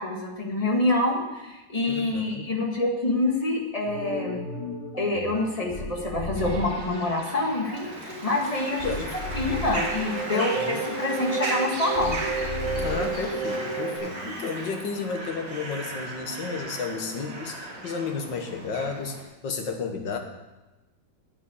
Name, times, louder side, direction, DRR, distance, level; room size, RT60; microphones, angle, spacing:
voice 1, 0.0-4.4 5.0-9.0 9.3-12.2, left 2 dB, 20° left, 0 dB, 1.8 m, -26 dB
voice 2, 1.9-2.5 8.8-9.1 10.3-10.8 12.8-20.2, left 5 dB, 80° left, 4 dB, 2.0 m, -32 dB
sound 1, 3.8-7.0 7.3-7.8 8.1-14.0, right 1 dB, 40° left, 4.3 m, -32 dB
sound 2, 6.3-19.2, right 2 dB, 70° right, 2.9 m, -38 dB
Applause, 7.6-15.0, right 1 dB, 35° right, 3.0 m, -39 dB
9.4 x 8.2 x 8.4 m, 1.1 s
omnidirectional pair, 2.0 m